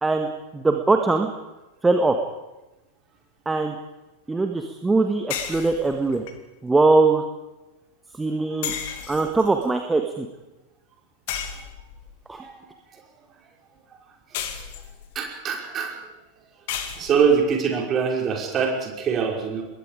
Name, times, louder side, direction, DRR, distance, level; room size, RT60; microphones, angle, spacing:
voice 1, 0.0-1.3 1.8-2.2 3.4-3.7 4.3-6.2 6.6-7.2 8.2-8.7 9.1-10.3 12.3-12.4, right 3 dB, 10° right, 5 dB, 1.7 m, -21 dB
sound 1, 5.3-6.3 8.6-9.6 11.3-12.1 14.3-15.2 16.7-17.4, left 9 dB, 50° left, 2.6 m, -33 dB
voice 2, 15.2-15.9 17.0-19.6, right 6 dB, 30° right, 0 dB, 5.4 m, -23 dB
27.5 x 21.5 x 5.1 m, 1.0 s
figure-of-eight pair, 90°, 0 cm